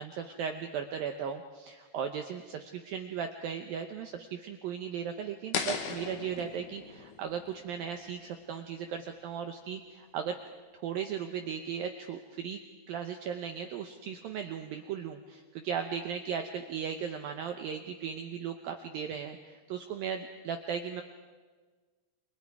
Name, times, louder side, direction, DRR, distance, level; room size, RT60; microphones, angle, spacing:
voice 1, 0.0-10.4 10.7-12.6 12.9-21.0, right 7 dB, 80° right, 5 dB, 2.1 m, -37 dB
sound 1, 5.5-8.6, left 6 dB, 60° left, 2.5 m, -38 dB
29.5 x 25.0 x 4.8 m, 1.4 s
omnidirectional pair, 5.4 m